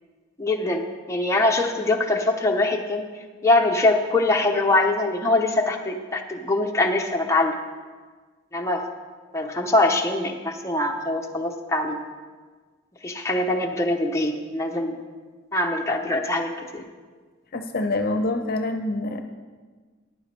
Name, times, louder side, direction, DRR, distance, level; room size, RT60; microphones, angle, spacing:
voice 1, 0.4-0.8 1.1-3.0 3.4-7.5 8.5-8.8 9.3-12.0 13.0-15.0 15.5-16.8, left 2 dB, 15° left, 1 dB, 0.8 m, -23 dB
voice 2, 17.5-19.2, left 2 dB, 50° left, 6 dB, 0.8 m, -26 dB
14.0 x 10.5 x 3.3 m, 1.4 s
head